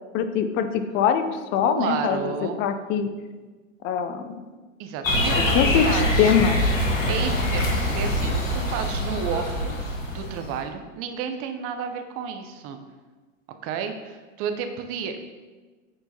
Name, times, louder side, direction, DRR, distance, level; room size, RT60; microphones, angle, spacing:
voice 1, 0.1-1.2 1.5-3.1 3.8-4.5 5.2-6.7, left 7 dB, 30° left, 9 dB, 0.5 m, -23 dB
voice 2, 1.6-2.6 4.8-6.3 7.1-9.8 10.1-12.8 13.6-15.2, right 7 dB, 35° right, 6 dB, 0.7 m, -31 dB
sound 1, 5.0-10.6, left 1 dB, 80° left, 1.6 m, -24 dB
9.4 x 4.4 x 2.8 m, 1.3 s
figure-of-eight pair, 95°, 39 cm